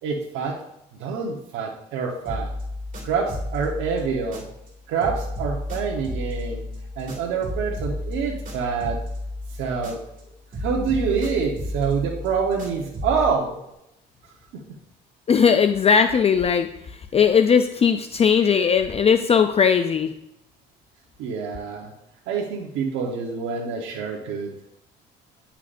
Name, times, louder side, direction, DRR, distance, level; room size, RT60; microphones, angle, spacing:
voice 1, 0.0-0.6 1.0-2.5 3.0-4.4 4.9-6.6 7.0-9.0 9.5-10.0 10.6-13.6 21.2-21.9 22.3-24.5, right 5 dB, 80° right, -1 dB, 1.2 m, -26 dB
sound 1, 2.3-4.7 5.0-10.2 10.5-13.3, left 1 dB, 40° right, 2.3 m, -32 dB
voice 2, 15.3-20.1, left 6 dB, 30° left, 8 dB, 0.4 m, -19 dB
9.9 x 5.8 x 2.6 m, 0.83 s
cardioid pair, 95°, 20 cm